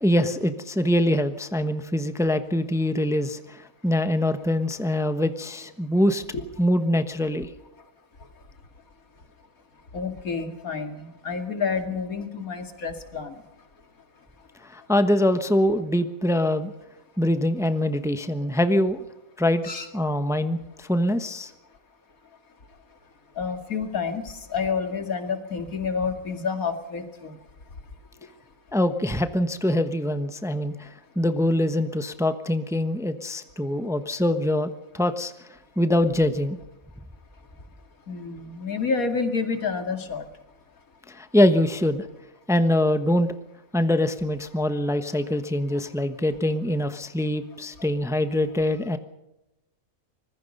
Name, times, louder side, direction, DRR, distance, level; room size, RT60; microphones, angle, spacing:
voice 1, 0.0-6.2 6.6-7.5 14.6-16.7 17.2-19.0 19.4-19.6 19.9-21.5 28.7-35.3 35.8-36.6 41.1-42.1 42.5-43.3 43.7-49.0, left 1 dB, ahead, 9 dB, 1.0 m, -24 dB
voice 2, 9.9-13.4 19.6-19.9 23.4-27.4 38.1-40.2, left 5 dB, 85° left, 6 dB, 2.7 m, -29 dB
25.0 x 21.0 x 5.4 m, 0.91 s
omnidirectional pair, 1.4 m